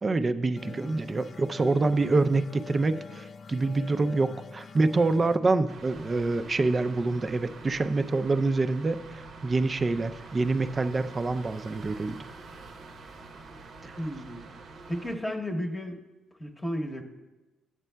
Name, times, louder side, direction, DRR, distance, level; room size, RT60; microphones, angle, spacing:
voice 1, 0.0-12.2 13.8-14.0, right 3 dB, 30° right, 10 dB, 0.4 m, -26 dB
sound 1, 0.6-7.8, left 4 dB, 45° left, 0.4 m, -46 dB
voice 2, 0.6-0.9 14.0-14.5 14.9-16.0 16.4-17.0, equal, 15° left, 3 dB, 0.9 m, -33 dB
sound 2, 5.7-15.2, right 3 dB, 70° right, 0.8 m, -46 dB
12.0 x 8.0 x 2.2 m, 1.1 s
cardioid pair, 90°, 0 cm